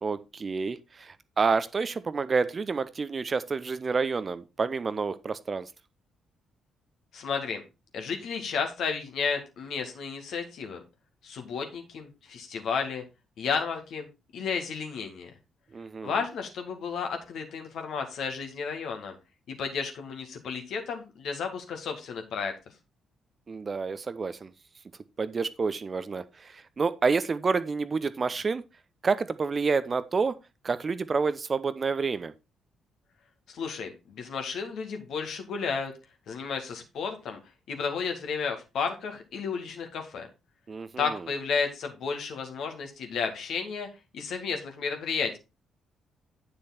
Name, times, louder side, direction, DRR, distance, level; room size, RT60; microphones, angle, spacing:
voice 1, 0.0-5.7 15.7-16.2 23.5-24.5 25.2-28.6 29.0-30.4 30.6-32.3 40.7-41.2, right 4 dB, 35° right, 0.7 m, -29 dB
voice 2, 7.1-7.6 7.9-10.8 11.2-13.0 13.4-14.1 14.3-15.3 16.0-19.2 19.5-22.5 33.5-35.9 36.3-37.4 37.7-40.3 41.0-43.9 44.1-45.4, left 5 dB, 55° left, 2.0 m, -32 dB
9.7 x 6.3 x 4.2 m
figure-of-eight pair, 40°, 0 cm